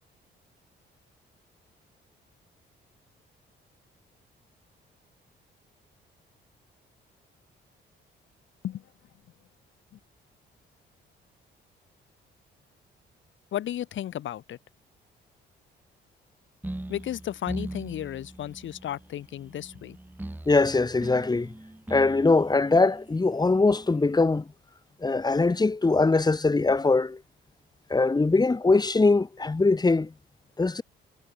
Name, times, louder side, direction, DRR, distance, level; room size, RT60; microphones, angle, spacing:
voice 1, 13.5-14.6 16.9-20.0, left 11 dB, 75° left, 4.5 m, -34 dB
sound 1, 16.6-24.1, right 1 dB, 10° right, 4.0 m, -41 dB
voice 2, 20.5-21.5 21.9-24.5 25.0-27.2 27.9-30.1 30.6-30.8, left 3 dB, 20° left, 2.1 m, -22 dB
cardioid pair, 90°, 20 cm